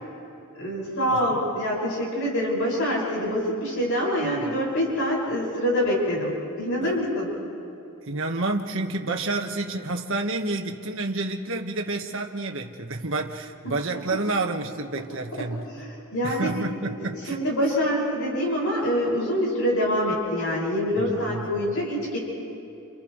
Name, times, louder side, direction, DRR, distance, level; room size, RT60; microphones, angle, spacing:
voice 1, 0.5-7.3 13.6-13.8 15.8-16.5 17.0-22.2, equal, 70° left, -4 dB, 6.2 m, -25 dB
voice 2, 8.0-15.6 16.2-17.4 21.0-21.6, right 2 dB, 60° right, 3 dB, 1.5 m, -29 dB
30.0 x 30.0 x 3.3 m, 2.8 s
head